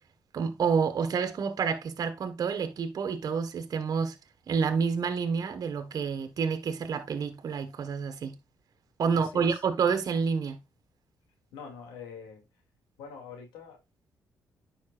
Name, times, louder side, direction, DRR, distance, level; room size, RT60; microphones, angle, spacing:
voice 1, 0.3-4.2 4.5-8.4 9.0-10.6, right 6 dB, 55° right, 1.5 m, -28 dB
voice 2, 9.1-9.6 11.5-12.4 13.0-13.8, left 5 dB, 85° left, 2.5 m, -44 dB
9.7 x 5.7 x 2.5 m
supercardioid pair, 60°, 7 cm